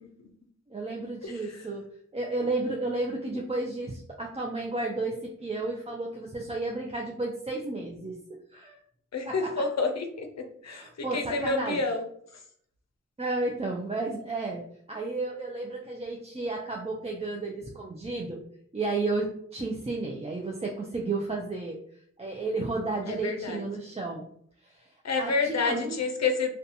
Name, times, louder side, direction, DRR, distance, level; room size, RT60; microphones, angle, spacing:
voice 1, 0.7-1.9 2.1-8.2 8.5-8.8 9.3-9.6 10.6-11.8 13.2-18.4 18.7-21.8 22.2-24.3 24.6-24.8 25.2-26.0, right 2 dB, 20° right, -1 dB, 0.4 m, -32 dB
voice 2, 1.2-1.6 9.1-12.0 23.1-23.6 25.0-26.5, left 4 dB, 60° left, 5 dB, 0.5 m, -29 dB
2.4 x 2.2 x 2.7 m, 0.63 s
cardioid pair, 45°, 30 cm